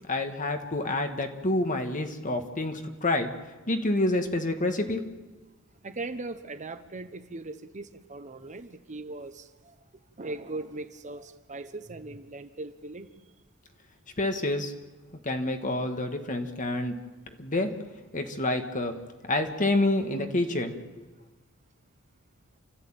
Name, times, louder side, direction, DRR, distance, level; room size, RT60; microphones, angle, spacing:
voice 1, 0.1-3.3 3.7-5.0 14.2-14.7 15.2-17.0 17.4-17.7 18.1-19.0 19.3-21.0, left 2 dB, 40° left, 6 dB, 1.9 m, -28 dB
voice 2, 0.8-1.2 5.8-9.7 10.2-13.1, right 2 dB, 35° right, 10 dB, 1.0 m, -39 dB
28.5 x 13.5 x 9.0 m, 1.2 s
head